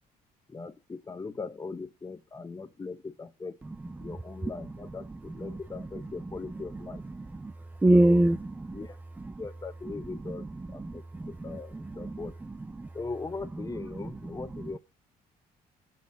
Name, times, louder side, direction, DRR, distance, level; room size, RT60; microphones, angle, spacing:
voice 1, 0.5-3.6 4.0-7.0 7.9-8.3 8.7-9.0 9.4-12.4 12.9-14.8, left 4 dB, 20° left, 10 dB, 1.2 m, -40 dB
voice 2, 7.2-7.5 7.8-8.8 10.3-10.4 10.8-12.2 12.8-12.9, right 1 dB, 10° right, 14 dB, 0.4 m, -25 dB
8.2 x 4.8 x 7.4 m, 0.28 s
cardioid pair, 110°, 17 cm